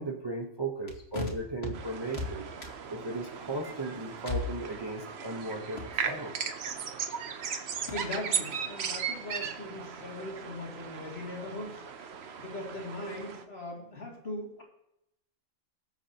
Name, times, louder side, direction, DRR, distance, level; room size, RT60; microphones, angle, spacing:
voice 1, 0.0-2.4 2.9-6.3, right 2 dB, 20° right, 0 dB, 0.8 m, -36 dB
Tui bird slight wind background waves, 1.7-13.4, right 6 dB, 55° right, 0.9 m, -37 dB
voice 2, 7.9-11.8 12.4-14.6, left 1 dB, 45° left, -2 dB, 2.9 m, -39 dB
20.5 x 8.0 x 2.9 m, 0.81 s
omnidirectional pair, 1.5 m